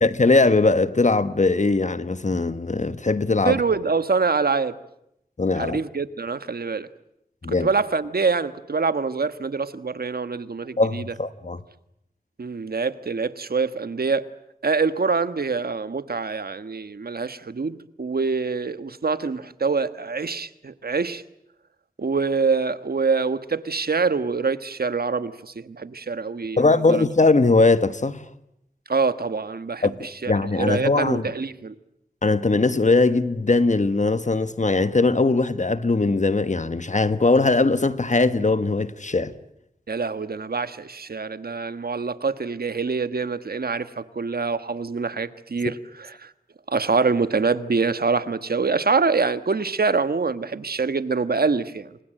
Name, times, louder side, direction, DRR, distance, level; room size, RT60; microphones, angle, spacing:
voice 1, 0.0-3.6 5.4-5.8 7.4-7.7 10.8-11.6 26.6-28.3 29.8-29.9 30.3-31.3 32.2-39.3, left 3 dB, 55° left, 1.4 m, -20 dB
voice 2, 3.4-4.8 5.6-6.9 7.5-11.1 12.4-14.3 14.6-21.2 22.0-27.0 28.9-31.7 39.9-46.3 46.7-52.0, right 4 dB, 85° right, 1.4 m, -25 dB
29.0 x 26.0 x 7.7 m
wide cardioid pair, 60°, 15 cm